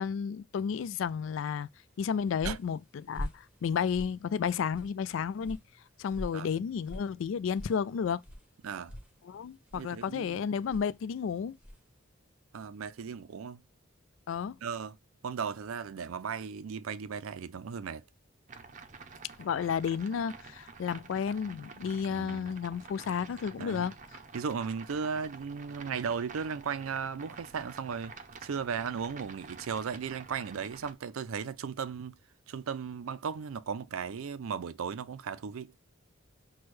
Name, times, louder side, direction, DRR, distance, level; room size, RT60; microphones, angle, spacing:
voice 1, 0.0-1.7 2.0-5.6 6.0-8.2 9.3-11.6 14.3-14.6 19.4-23.9, left 7 dB, 65° left, 0.3 m, -32 dB
sound 1, 1.9-12.0, equal, 5° right, 0.9 m, -46 dB
voice 2, 8.6-9.0 9.7-10.4 12.5-13.6 14.6-15.0 15.2-18.0 22.1-22.5 23.6-23.9 24.3-28.1 28.4-32.1 32.5-35.7, right 6 dB, 85° right, 0.4 m, -36 dB
sound 2, 18.5-30.9, right 4 dB, 35° right, 0.5 m, -49 dB
6.0 x 2.2 x 3.1 m
head